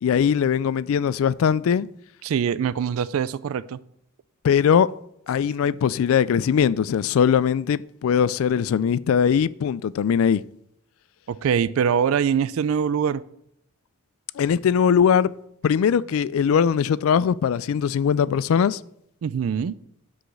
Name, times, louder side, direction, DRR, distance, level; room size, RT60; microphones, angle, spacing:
voice 1, 0.0-1.9 4.4-4.9 5.3-10.4 14.4-15.3 15.6-18.8, left 7 dB, 70° left, 0.3 m, -20 dB
voice 2, 2.2-3.8 11.3-13.2 19.2-19.8, right 7 dB, 75° right, 0.3 m, -23 dB
6.2 x 4.9 x 6.8 m
head